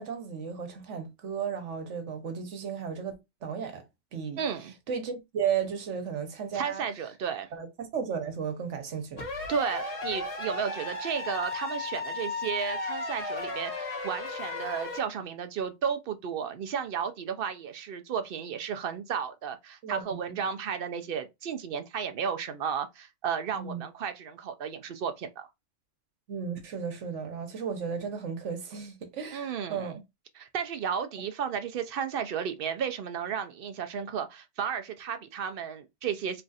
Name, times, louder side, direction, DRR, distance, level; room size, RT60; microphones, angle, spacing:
voice 1, 0.0-3.2 3.4-3.8 4.1-4.4 4.9-6.8 7.5-9.2 19.8-20.4 23.5-23.8 26.3-30.0, right 7 dB, 75° right, 1.2 m, -34 dB
voice 2, 4.4-4.7 6.5-7.5 9.5-25.5 29.3-29.9 30.4-36.4, right 7 dB, 60° right, 0.6 m, -33 dB
sound 1, 9.2-15.0, left 3 dB, 50° left, 1.4 m, -35 dB
3.2 x 2.4 x 4.0 m
omnidirectional pair, 1.2 m